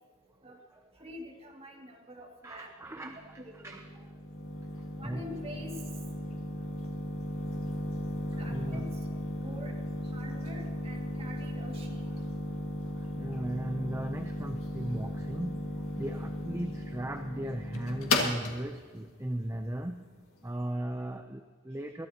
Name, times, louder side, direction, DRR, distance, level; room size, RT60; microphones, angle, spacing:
voice 1, 1.0-2.7 3.0-3.8 4.9-5.8 8.4-8.9 9.4-9.8 10.0-12.0, equal, 30° right, -1 dB, 2.2 m, -46 dB
voice 2, 2.4-4.1 5.0-5.2 8.3-8.9 9.4-9.6 12.9-20.0 20.4-22.1, right 1 dB, 15° right, 6 dB, 0.5 m, -37 dB
sound 1, 3.0-20.6, left 1 dB, 90° left, 1.9 m, -36 dB
22.0 x 12.5 x 2.9 m, 1.5 s
head